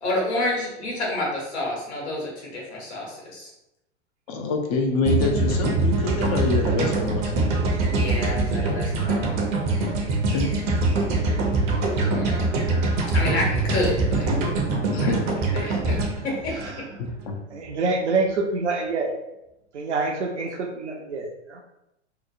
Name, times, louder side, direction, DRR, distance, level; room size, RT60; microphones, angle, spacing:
voice 1, 0.0-3.5 7.9-9.3 11.6-12.5 13.1-14.3 15.0-15.1 15.5-16.6, left 1 dB, 65° left, -3 dB, 1.2 m, -29 dB
voice 2, 4.3-7.5 10.3-10.5 14.9-15.4 17.0-17.4, left 3 dB, 35° left, 4 dB, 0.4 m, -26 dB
sound 1, 5.0-17.3, right 2 dB, 25° right, 0.5 m, -23 dB
voice 3, 17.5-19.1 19.7-21.6, right 3 dB, 75° right, 2 dB, 0.6 m, -26 dB
2.9 x 2.0 x 2.5 m, 0.85 s
figure-of-eight pair, 95°, 35 cm